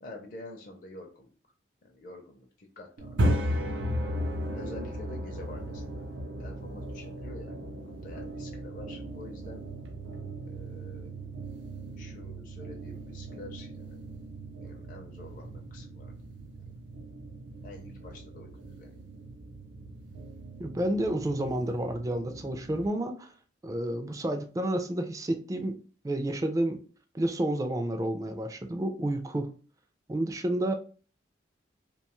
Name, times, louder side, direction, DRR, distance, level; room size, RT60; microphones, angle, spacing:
voice 1, 0.0-1.3 1.8-3.6 4.4-5.8 6.4-7.6 7.8-9.6 10.5-11.1 12.0-14.0 14.6-16.1 16.7-16.8 17.6-19.0, left 2 dB, 45° left, 0.5 m, -47 dB
sound 1, 3.0-22.9, equal, 85° right, 0.6 m, -36 dB
voice 2, 20.6-23.3 23.6-25.8 26.0-26.8 27.1-29.5 30.1-30.7, right 1 dB, 20° right, 0.3 m, -30 dB
2.7 x 2.2 x 3.0 m
head